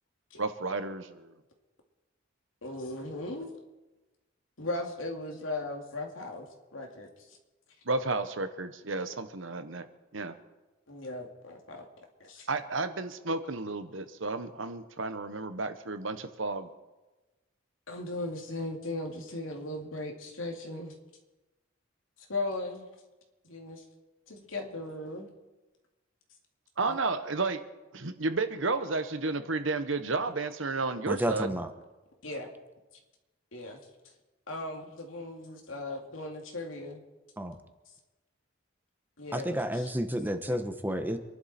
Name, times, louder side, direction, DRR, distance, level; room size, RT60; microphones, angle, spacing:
voice 1, 0.4-1.3 7.9-9.9 10.1-10.3 12.5-16.7 26.8-27.6 27.9-31.5, right 3 dB, 75° right, 10 dB, 1.1 m, -32 dB
voice 2, 2.6-3.5 4.6-6.5 6.7-7.4 10.9-11.9 12.2-12.5 17.9-21.0 22.2-22.8 23.4-23.8 24.3-25.3 26.9-27.0 32.2-32.5 33.5-33.8 34.5-37.0 39.2-39.9 40.5-40.6, left 2 dB, 90° left, 2 dB, 2.6 m, -37 dB
voice 3, 31.1-31.7 37.4-37.6 39.3-41.2, equal, 10° right, 8 dB, 1.1 m, -31 dB
27.0 x 11.5 x 4.4 m, 1.1 s
head